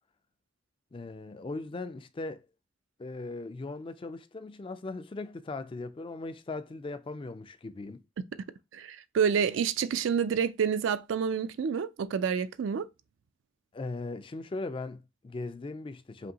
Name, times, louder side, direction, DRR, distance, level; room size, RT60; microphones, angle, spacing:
voice 1, 0.9-2.5 3.0-8.0 13.7-16.3, left 3 dB, 25° left, 0.3 m, -39 dB
voice 2, 8.7-12.9, right 7 dB, 65° right, 0.3 m, -28 dB
5.1 x 2.7 x 2.8 m
head